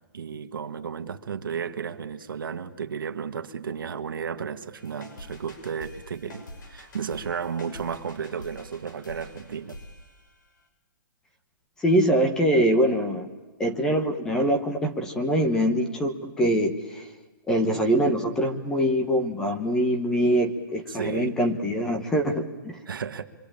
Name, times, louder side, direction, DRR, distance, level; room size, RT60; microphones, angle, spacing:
voice 1, 0.1-9.8 20.9-21.4 22.9-23.2, right 6 dB, 75° right, 8 dB, 1.7 m, -33 dB
sound 1, 4.8-10.6, left 1 dB, 60° left, 6.0 m, -46 dB
voice 2, 11.8-13.3 13.6-17.1 17.5-22.8, equal, 5° left, 6 dB, 0.9 m, -24 dB
26.5 x 24.5 x 8.8 m, 1.2 s
hypercardioid pair, 175°, 12 cm